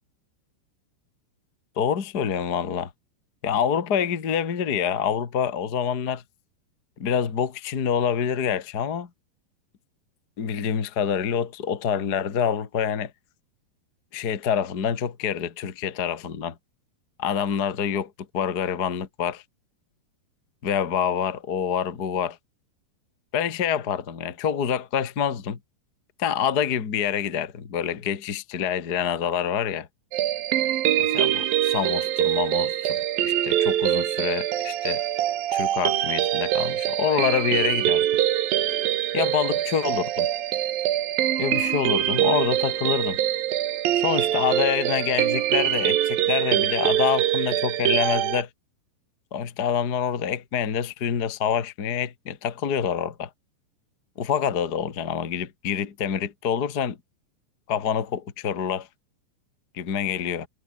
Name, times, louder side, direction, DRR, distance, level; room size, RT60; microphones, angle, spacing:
voice 1, 1.8-2.9 3.4-6.2 7.0-9.1 10.4-13.1 14.1-16.5 17.2-19.4 20.6-22.4 23.3-25.6 26.2-29.9 31.1-35.0 35.5-38.1 39.1-40.3 41.4-43.2 43.9-48.5 49.3-53.3 54.2-57.0 57.7-58.9 59.7-60.5, left 8 dB, 35° left, 1.7 m, -26 dB
sound 1, 30.1-48.4, right 12 dB, 65° right, 3.0 m, -24 dB
omnidirectional pair, 4.8 m